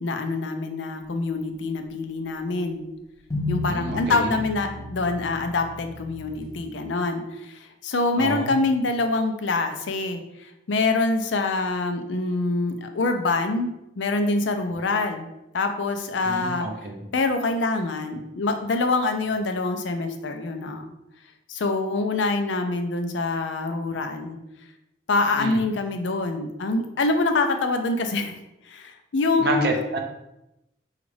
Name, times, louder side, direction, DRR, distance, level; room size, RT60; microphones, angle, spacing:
voice 1, 0.0-2.8 3.5-15.3 15.5-16.7 17.1-20.8 21.5-24.4 25.1-28.4 28.7-29.7, left 3 dB, 80° left, 6 dB, 0.5 m, -25 dB
sound 1, 3.3-6.6, left 2 dB, 20° left, 0.6 m, -33 dB
voice 2, 3.7-4.3 8.2-8.6 16.3-17.0 25.4-25.6 29.4-30.0, right 2 dB, 60° right, 3 dB, 0.6 m, -28 dB
5.0 x 2.4 x 3.2 m, 0.89 s
head